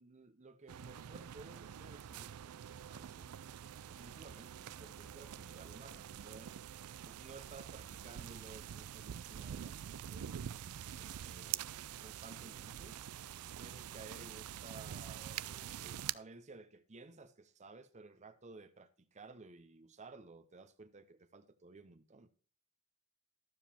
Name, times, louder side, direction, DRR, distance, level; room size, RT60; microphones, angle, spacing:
voice 1, 0.0-3.3 3.9-6.5 7.0-10.4 11.0-13.0 13.6-22.3, right 3 dB, 30° right, 0.7 m, -56 dB
sound 1, 0.7-16.1, right 10 dB, 85° right, 0.4 m, -46 dB
12.5 x 7.3 x 4.3 m
head